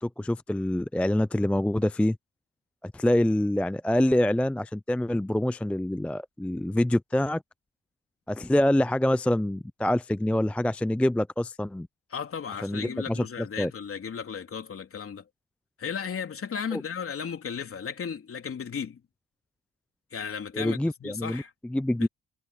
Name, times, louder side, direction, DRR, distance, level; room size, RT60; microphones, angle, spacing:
voice 1, 0.0-2.2 2.8-7.4 8.3-11.9 12.6-13.3 13.6-13.7 16.7-16.8 20.5-22.1, left 1 dB, 5° left, 0.4 m, -26 dB
voice 2, 12.1-15.2 15.8-19.0 20.1-21.5 22.0-22.1, left 7 dB, 45° left, 3.3 m, -35 dB
cardioid pair, 90°, 30 cm